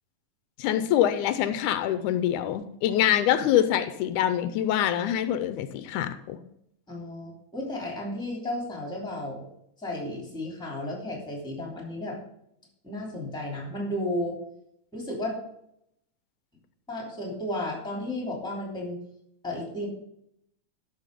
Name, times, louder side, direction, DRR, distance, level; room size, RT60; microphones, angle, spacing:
voice 1, 0.6-6.4, left 11 dB, 85° left, 11 dB, 2.1 m, -25 dB
voice 2, 6.9-9.5 9.8-12.2 12.8-14.4 14.9-15.4 16.9-19.0 19.4-19.9, left 1 dB, ahead, -1 dB, 2.5 m, -33 dB
12.5 x 6.1 x 5.2 m, 0.76 s
omnidirectional pair, 3.6 m